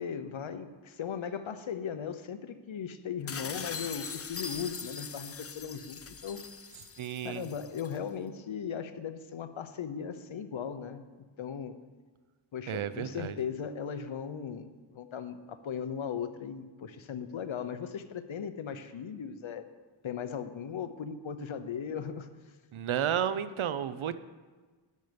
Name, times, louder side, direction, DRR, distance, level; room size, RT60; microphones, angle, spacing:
voice 1, 0.0-6.4 7.2-11.0 11.4-11.7 12.5-19.6 20.0-22.3, left 7 dB, 75° left, 10 dB, 0.9 m, -38 dB
sound 1, 3.3-8.0, left 6 dB, 30° left, 0.5 m, -41 dB
voice 2, 7.0-7.5 12.7-13.3 22.7-24.1, right 9 dB, 80° right, 13 dB, 0.7 m, -32 dB
12.0 x 9.4 x 5.2 m, 1.4 s
wide cardioid pair, 85°, 47 cm